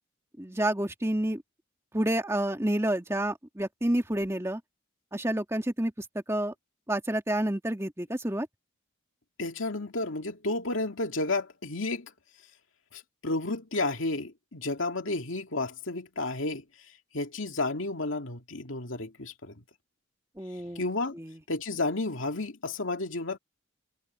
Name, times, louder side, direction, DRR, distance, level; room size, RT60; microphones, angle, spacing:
voice 1, 0.4-1.4 1.9-4.6 5.1-6.5 6.9-8.5 20.4-20.8 21.2-21.4, right 1 dB, 15° right, 1.9 m, -29 dB
voice 2, 9.4-12.1 12.9-16.6 17.1-19.6 20.7-21.2 21.5-23.4, left 2 dB, 80° left, 2.4 m, -32 dB
head